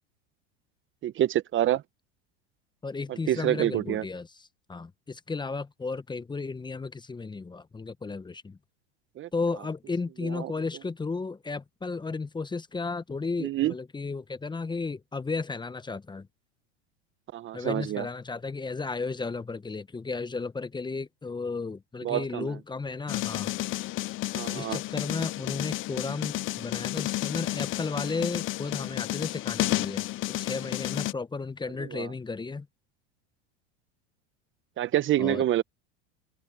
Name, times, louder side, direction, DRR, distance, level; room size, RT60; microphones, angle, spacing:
voice 1, 1.0-1.8 3.3-4.0 9.2-9.3 10.3-10.5 13.4-13.7 17.3-18.0 22.0-22.5 24.3-24.8 31.9-32.1 34.8-35.6, right 13 dB, 35° right, 1.0 m, -27 dB
voice 2, 2.8-8.6 9.3-16.3 17.5-23.5 24.5-30.0 30.4-32.7 35.2-35.4, left 4 dB, 15° left, 1.2 m, -34 dB
sound 1, 23.1-31.1, left 18 dB, 35° left, 0.6 m, -31 dB
open air
hypercardioid pair, 95°, 34 cm